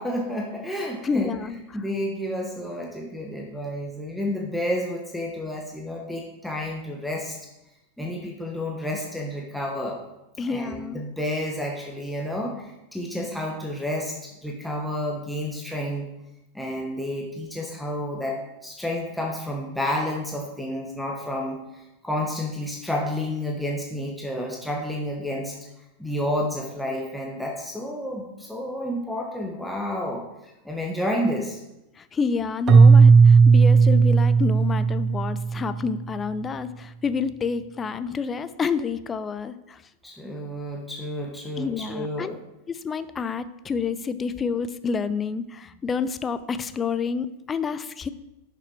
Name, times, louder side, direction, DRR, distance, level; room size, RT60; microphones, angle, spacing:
voice 1, 0.0-1.3 1.7-7.4 8.0-10.0 10.4-16.1 16.5-25.6 26.0-31.6 40.0-42.4, left 1 dB, ahead, -1 dB, 1.5 m, -30 dB
voice 2, 1.0-1.9 10.4-11.0 32.0-39.8 41.6-42.3 42.7-48.1, left 5 dB, 20° left, 13 dB, 0.6 m, -29 dB
Keyboard (musical), 32.7-35.8, right 5 dB, 30° right, 0.7 m, -15 dB
11.0 x 6.8 x 4.7 m, 0.92 s
figure-of-eight pair, 90°, 0 cm